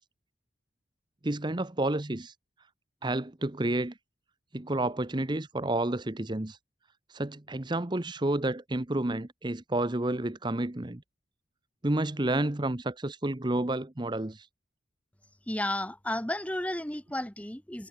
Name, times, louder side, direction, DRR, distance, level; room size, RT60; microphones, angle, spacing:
voice 1, 1.2-2.3 3.0-4.0 4.5-6.6 7.1-11.0 11.8-14.5, right 1 dB, 25° right, 0.9 m, -30 dB
voice 2, 15.5-17.9, left 1 dB, 5° left, 1.1 m, -33 dB
head